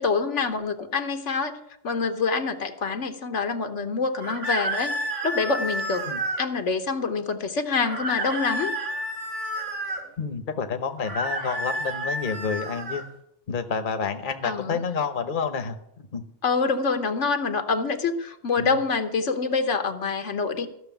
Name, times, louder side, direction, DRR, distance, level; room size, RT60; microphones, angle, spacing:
voice 1, 0.0-1.6 1.8-4.9 5.2-6.0 6.4-8.7 14.4-14.8 16.4-20.7, left 4 dB, 75° left, 7 dB, 1.4 m, -26 dB
sound 1, 4.2-6.4 7.8-10.0 11.0-13.1, right 1 dB, 55° right, 2.4 m, -30 dB
voice 2, 10.2-13.0 13.5-16.2 18.6-18.8, left 5 dB, 45° left, 7 dB, 1.2 m, -29 dB
14.5 x 6.5 x 9.1 m, 0.76 s
omnidirectional pair, 1.2 m